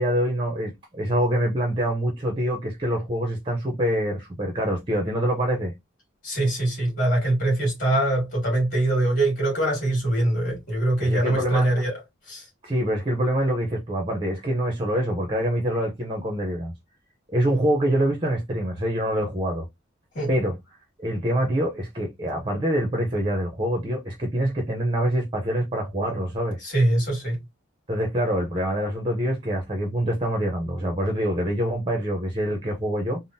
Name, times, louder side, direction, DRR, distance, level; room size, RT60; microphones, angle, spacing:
voice 1, 0.0-5.7 11.0-11.7 12.6-16.7 17.3-19.7 20.3-20.6 21.0-26.6 27.9-33.2, equal, 25° right, 0.6 m, -25 dB
voice 2, 6.2-11.9 12.3-12.5 20.1-20.3 26.6-27.4, right 1 dB, 40° left, 1.8 m, -23 dB
3.4 x 2.0 x 2.6 m
head